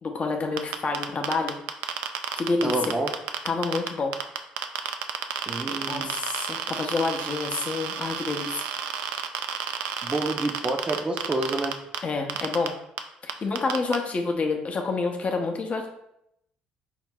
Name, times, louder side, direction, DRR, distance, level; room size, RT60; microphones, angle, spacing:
voice 1, 0.0-1.5 2.4-2.7 3.4-4.1 5.7-8.6 12.0-12.7 13.2-15.9, left 3 dB, 40° left, 3 dB, 0.6 m, -28 dB
sound 1, 0.6-3.9 4.1-12.0 12.3-12.7 13.0-13.1 13.3-14.0, right 9 dB, 75° right, 0.3 m, -30 dB
voice 2, 2.6-3.1 5.5-6.2 10.0-11.8, right 2 dB, 30° right, 2 dB, 0.5 m, -28 dB
4.6 x 2.0 x 3.7 m, 0.77 s
hypercardioid pair, 60°, 3 cm